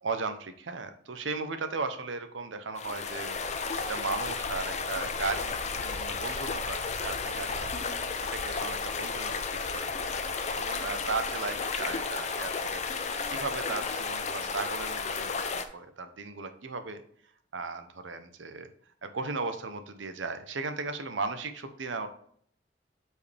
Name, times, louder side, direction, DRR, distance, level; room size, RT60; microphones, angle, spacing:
voice 1, 0.0-9.3 9.7-9.9 10.3-17.0 17.5-18.7 19.0-22.1, right 4 dB, 85° right, 9 dB, 0.8 m, -36 dB
sound 1, 2.8-15.6, left 4 dB, 40° left, 0.7 m, -33 dB
8.3 x 4.7 x 3.4 m, 0.63 s
head